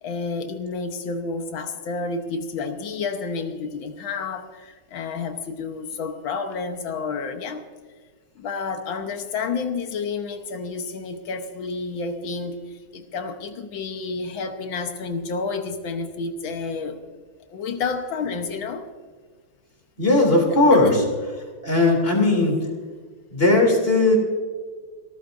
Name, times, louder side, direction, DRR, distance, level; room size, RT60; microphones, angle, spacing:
voice 1, 0.0-7.6 8.4-17.0 17.5-18.9 20.5-21.1 22.0-22.1, left 4 dB, 75° left, 7 dB, 1.8 m, -30 dB
voice 2, 20.0-20.9 21.6-22.6 23.3-24.2, left 2 dB, 30° left, 1 dB, 3.4 m, -17 dB
27.0 x 14.0 x 2.6 m, 1.5 s
omnidirectional pair, 2.2 m